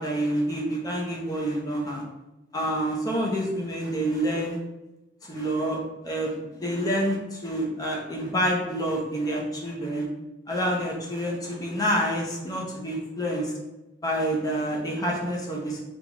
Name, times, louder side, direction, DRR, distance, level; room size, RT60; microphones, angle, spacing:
voice 1, 0.0-2.0 2.5-4.6 5.2-10.1 10.5-13.5 14.0-15.8, equal, 20° left, -2 dB, 0.7 m, -28 dB
5.2 x 2.4 x 3.0 m, 0.99 s
head